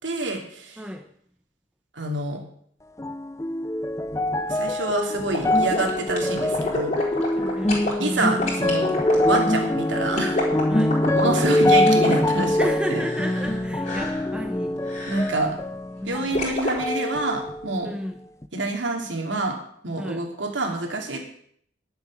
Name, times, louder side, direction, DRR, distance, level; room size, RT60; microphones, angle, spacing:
voice 1, 0.0-0.8 2.0-2.4 4.5-6.9 8.0-8.9 9.3-10.4 11.1-12.6 12.9-13.0 15.1-15.6 16.1-17.9 18.5-19.6 19.8-21.2, right 2 dB, 85° right, 2 dB, 2.7 m, -27 dB
voice 2, 0.8-1.1 7.4-8.0 10.7-11.0 12.6-14.8 16.0-16.5 17.8-18.2 20.0-20.2 21.1-21.2, equal, 5° right, 4 dB, 1.0 m, -33 dB
sound 1, 3.0-16.5 16.8-17.7 18.4-18.5, left 1 dB, 15° left, 0.5 m, -24 dB
sound 2, 5.3-7.9 8.4-13.6 13.8-14.3 14.9-15.4 16.3-16.8, left 1 dB, 40° left, 4.1 m, -29 dB
11.0 x 7.8 x 7.4 m, 0.65 s
head